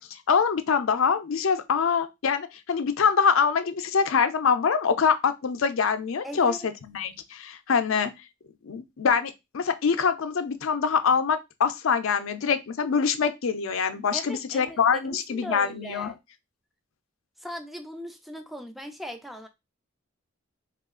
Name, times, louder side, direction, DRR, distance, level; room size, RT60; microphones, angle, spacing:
voice 1, 0.0-8.1 8.6-16.1, left 6 dB, 80° left, 0.5 m, -24 dB
voice 2, 6.2-6.7 14.1-16.2 17.4-19.5, equal, ahead, 0.4 m, -39 dB
3.1 x 2.4 x 3.6 m
head